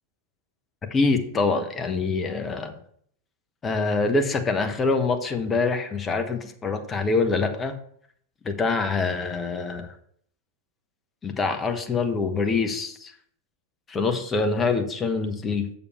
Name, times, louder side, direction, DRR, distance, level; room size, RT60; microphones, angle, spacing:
voice 1, 0.9-2.8 3.6-7.7 8.4-9.9 11.2-13.1 13.9-15.7, left 4 dB, 20° left, 6 dB, 1.1 m, -25 dB
6.9 x 6.9 x 4.3 m, 0.63 s
figure-of-eight pair, 90°, 0 cm